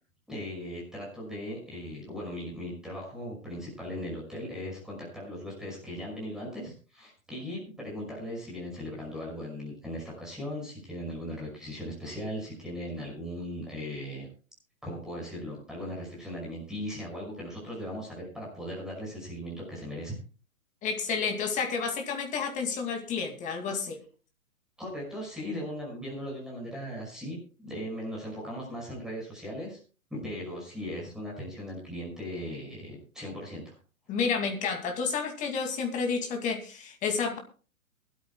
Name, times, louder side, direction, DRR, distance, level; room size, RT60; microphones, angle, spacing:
voice 1, 0.3-14.3 14.8-20.2 24.8-29.8 30.1-33.8, equal, ahead, -3 dB, 5.5 m, -38 dB
voice 2, 20.8-24.0 34.1-37.4, left 5 dB, 20° left, 4 dB, 2.4 m, -30 dB
22.5 x 13.0 x 2.3 m, 0.36 s
figure-of-eight pair, 120°, 41 cm